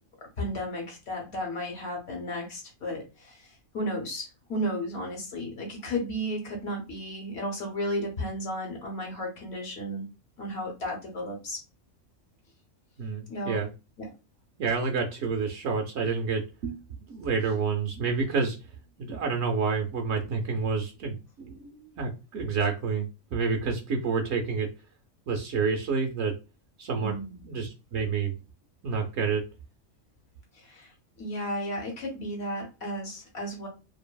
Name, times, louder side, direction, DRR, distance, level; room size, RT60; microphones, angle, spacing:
voice 1, 0.4-3.5 3.7-10.0 10.4-11.6 13.3-13.6 14.0-14.1 27.0-27.4 30.6-30.9 31.2-33.7, equal, 55° left, 1 dB, 1.1 m, -33 dB
voice 2, 13.0-13.7 14.6-16.8 17.1-18.6 19.0-24.7 25.3-26.3 26.8-27.2 27.5-28.3 28.8-29.4, right 5 dB, 65° right, 2 dB, 0.8 m, -29 dB
2.6 x 2.6 x 2.2 m, 0.29 s
omnidirectional pair, 1.4 m